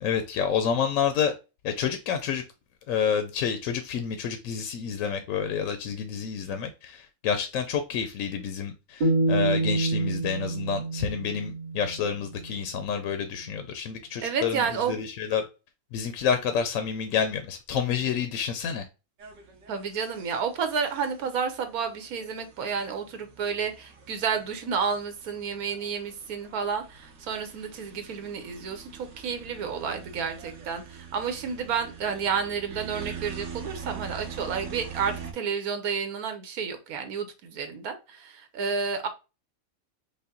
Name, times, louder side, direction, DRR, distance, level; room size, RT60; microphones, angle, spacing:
voice 1, 0.0-1.3 1.6-2.4 2.9-15.4 15.9-18.8, left 7 dB, 70° left, 0.9 m, -29 dB
sound 1, 9.0-12.1, right 2 dB, 40° right, 0.8 m, -27 dB
voice 2, 14.2-15.0 19.7-39.1, right 6 dB, 85° right, 1.3 m, -31 dB
sound 2, 19.2-35.3, right 7 dB, 60° right, 1.3 m, -44 dB
5.4 x 2.1 x 3.6 m
omnidirectional pair, 1.5 m